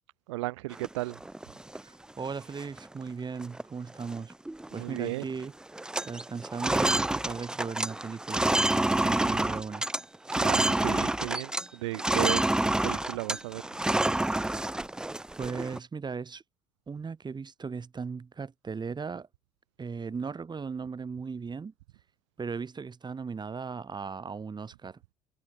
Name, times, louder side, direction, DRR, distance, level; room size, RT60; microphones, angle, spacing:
voice 1, 0.3-1.2 4.7-5.3 10.4-12.4 12.8-13.6, right 20 dB, 75° right, 1.6 m, -34 dB
sound 1, 0.7-1.8 2.3-2.4 2.6-3.0 3.4-3.6 3.9-5.0 5.2-5.5 5.7-11.7 11.9-15.8, right 1 dB, 5° right, 0.3 m, -28 dB
voice 2, 1.8-4.3 4.7-5.5 6.0-8.5 8.7-9.9 15.4-16.4 16.9-19.3 19.8-21.7 22.4-25.0, right 5 dB, 30° right, 5.1 m, -37 dB
hypercardioid pair, 65°, 15 cm